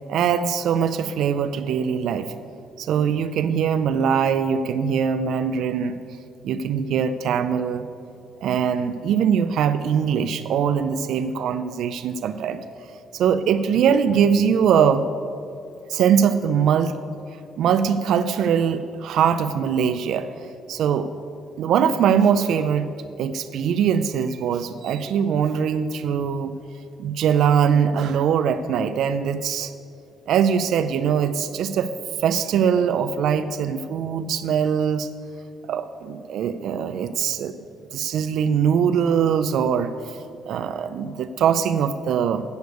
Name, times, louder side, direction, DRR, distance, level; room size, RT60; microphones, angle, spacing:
voice 1, 0.1-2.3 2.8-5.9 6.4-7.9 8.4-12.6 13.1-15.0 15.9-16.9 17.6-21.1 21.6-22.9 23.2-26.5 27.0-29.7 30.3-31.9 32.2-35.1 35.7-37.6 37.9-40.2 40.5-42.4, right 7 dB, 65° right, 10 dB, 0.4 m, -22 dB
7.9 x 6.7 x 8.1 m, 2.6 s
cardioid pair, 130°, 0 cm